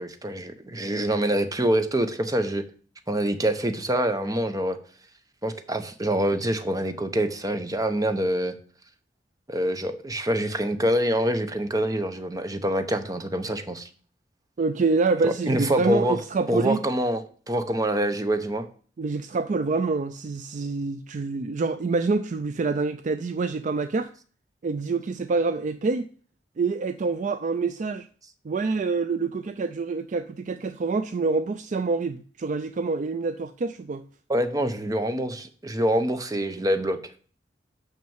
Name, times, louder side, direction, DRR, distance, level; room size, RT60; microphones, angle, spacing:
voice 1, 0.0-2.6 3.1-4.8 5.4-8.5 9.5-13.9 15.2-16.2 16.5-18.7 34.3-37.1, right 1 dB, 20° right, 0.8 m, -25 dB
voice 2, 14.6-16.8 19.0-24.1 24.6-26.1 26.6-28.1 28.4-34.0, right 4 dB, 45° right, 0.4 m, -26 dB
6.3 x 5.9 x 7.1 m
head